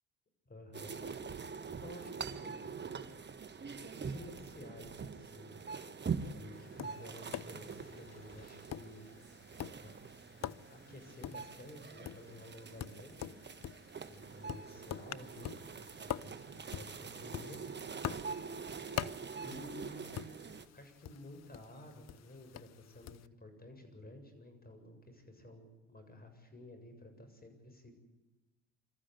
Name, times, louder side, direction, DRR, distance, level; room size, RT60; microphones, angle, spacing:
voice 1, 0.5-1.0 1.8-3.3 3.9-5.6 6.2-9.1 9.8-9.9 10.7-13.4 14.1-17.6 19.4-20.3 20.7-28.0, left 1 dB, 25° left, 6 dB, 7.4 m, -53 dB
sound 1, 0.7-20.7, right 5 dB, 30° right, 1.8 m, -44 dB
Tap, 6.5-23.3, left 11 dB, 50° left, 0.8 m, -46 dB
26.5 x 14.0 x 9.5 m, 1.1 s
hypercardioid pair, 60°, 34 cm